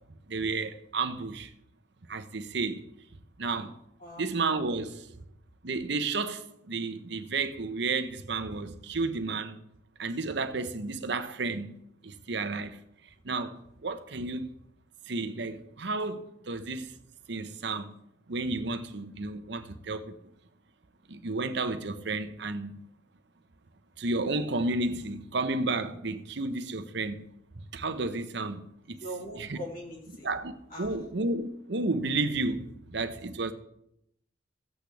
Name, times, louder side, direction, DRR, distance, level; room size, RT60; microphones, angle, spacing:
voice 1, 0.3-1.5 2.1-2.9 3.4-3.8 4.2-5.1 5.6-9.6 10.0-11.8 12.0-12.8 13.2-14.5 15.1-16.9 17.3-17.9 18.3-20.2 21.1-22.8 24.0-27.3 27.7-29.0 29.4-29.6 30.2-33.5, right 3 dB, 65° right, 0.9 m, -32 dB
voice 2, 4.0-4.3 29.0-30.3 30.7-30.9, equal, 50° left, 3.2 m, -41 dB
15.0 x 8.2 x 3.4 m
head